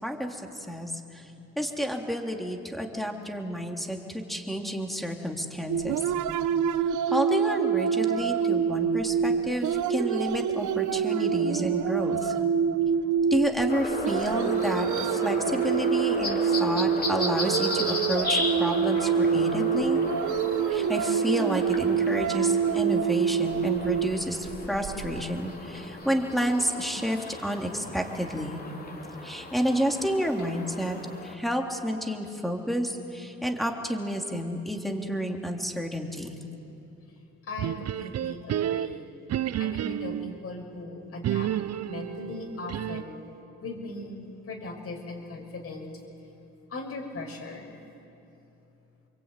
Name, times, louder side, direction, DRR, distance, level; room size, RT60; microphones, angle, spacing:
voice 1, 0.0-1.3 1.6-6.0 6.9-12.3 13.3-20.0 20.7-28.6 29.2-36.4, equal, ahead, 1 dB, 3.4 m, -30 dB
sound 1, 5.7-25.2, right 7 dB, 75° right, 1.0 m, -26 dB
sound 2, 13.7-31.3, left 2 dB, 30° left, 3.4 m, -35 dB
voice 2, 37.4-39.1 39.6-41.5 41.8-43.2 43.6-45.9 46.7-47.7, left 2 dB, 50° left, 3 dB, 6.4 m, -39 dB
sound 3, 37.6-40.4 41.2-43.2, right 11 dB, 55° right, 0.6 m, -30 dB
27.5 x 23.5 x 9.3 m, 2.9 s
cardioid pair, 90°, 30 cm